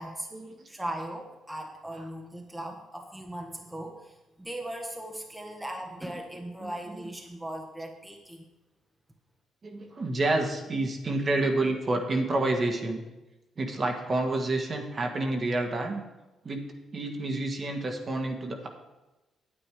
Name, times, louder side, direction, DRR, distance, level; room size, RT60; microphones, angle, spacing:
voice 1, 0.7-8.4, right 1 dB, 10° right, 2 dB, 1.3 m, -38 dB
voice 2, 6.6-7.1 9.6-13.0 13.6-16.0 16.4-16.6 16.9-18.7, right 2 dB, 40° right, 3 dB, 1.7 m, -29 dB
9.1 x 8.7 x 4.9 m, 1.0 s
cardioid pair, 90°, 0 cm